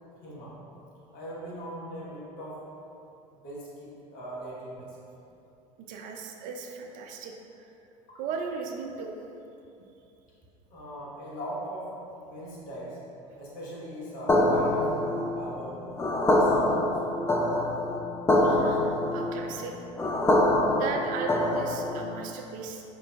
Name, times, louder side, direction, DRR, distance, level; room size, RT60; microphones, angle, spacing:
voice 1, 0.2-0.6 1.1-2.6 3.3-5.0 8.1-8.2 10.7-11.9 12.2-13.0 13.4-15.8 16.3-17.3, equal, 55° left, -6 dB, 1.1 m, -39 dB
voice 2, 5.8-7.7 8.2-9.1 9.8-9.9 18.4-19.7 20.8-22.8, right 5 dB, 50° right, 3 dB, 0.4 m, -37 dB
sound 1, 14.3-22.1, left 1 dB, 15° left, 0.4 m, -25 dB
4.9 x 3.0 x 2.3 m, 2.8 s
hypercardioid pair, 80°, 18 cm